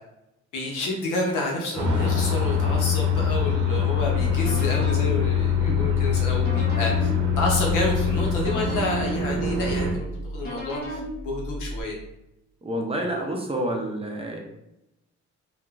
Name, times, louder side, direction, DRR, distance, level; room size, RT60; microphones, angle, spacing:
voice 1, 0.5-7.1 7.4-12.0, left 2 dB, 90° left, -2 dB, 0.8 m, -29 dB
sound 1, 1.8-9.9, left 6 dB, 75° right, 0.7 m, -23 dB
sound 2, 3.9-11.8, equal, 30° left, 0.9 m, -34 dB
voice 2, 12.6-14.4, right 1 dB, 20° right, 1 dB, 0.5 m, -29 dB
2.7 x 2.4 x 2.4 m, 0.87 s
cardioid pair, 90°, 30 cm